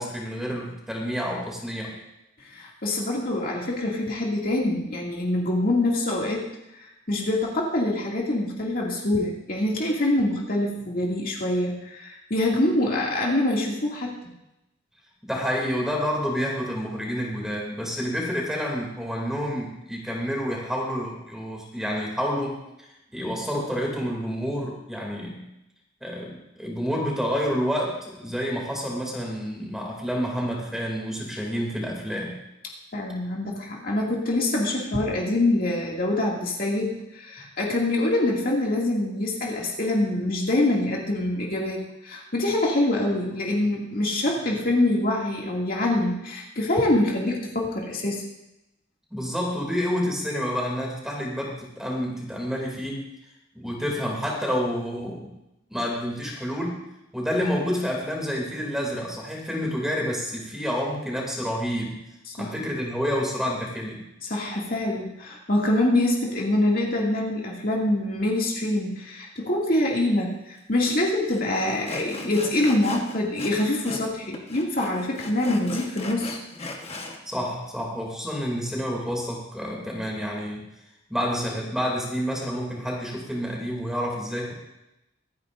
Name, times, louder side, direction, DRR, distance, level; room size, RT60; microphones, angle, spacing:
voice 1, 0.0-2.0 15.3-22.6 23.1-25.5 26.0-32.4 49.1-53.1 53.5-55.3 55.7-56.8 57.1-62.0 62.4-64.1 77.3-80.6 81.1-84.5, equal, 5° right, -2 dB, 2.8 m, -29 dB
voice 2, 2.4-6.5 7.1-14.2 32.9-48.2 62.3-62.5 64.2-76.4, left 1 dB, 50° left, -2 dB, 2.5 m, -25 dB
Sawing, 70.8-70.9 71.3-71.4 71.9-74.1 74.3-77.2, left 2 dB, 30° left, 1.3 m, -38 dB
25.5 x 9.7 x 2.6 m, 0.89 s
head